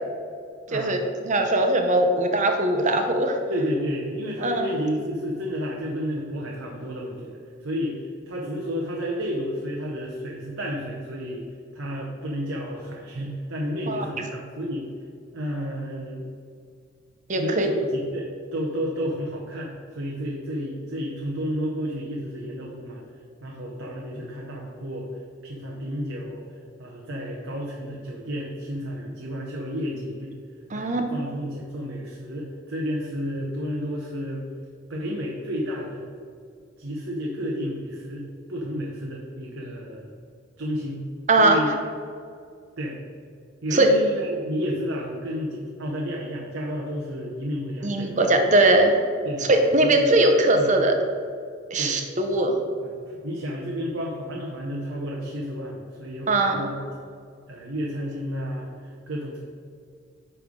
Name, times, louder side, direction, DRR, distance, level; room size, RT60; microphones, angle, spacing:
voice 1, 1.2-3.4 4.4-4.7 13.9-14.0 17.3-17.7 30.7-31.1 41.3-41.6 43.7-43.9 47.8-49.0 49.5-50.9 51.7-52.5 56.3-56.7, right 2 dB, 40° right, 4 dB, 0.8 m, -20 dB
voice 2, 3.5-11.5 11.7-14.9 15.3-16.3 17.4-23.0 23.4-26.5 26.8-30.3 30.8-34.4 34.9-36.0 36.8-40.1 40.6-41.1 41.4-41.8 42.8-43.0 43.6-48.2 49.2-49.5 49.8-50.1 50.5-50.7 51.8-52.0 52.8-56.8 57.5-59.4, equal, 85° right, -1 dB, 0.9 m, -31 dB
9.9 x 3.3 x 5.2 m, 2.2 s
head